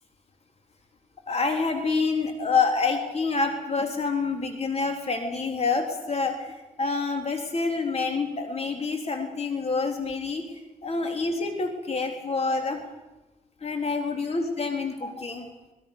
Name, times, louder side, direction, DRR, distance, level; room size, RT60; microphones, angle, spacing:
voice 1, 1.3-10.5 10.8-12.8 13.6-15.5, left 4 dB, 45° left, 4 dB, 3.7 m, -27 dB
24.5 x 21.0 x 6.9 m, 1.1 s
cardioid pair, 95°, 15 cm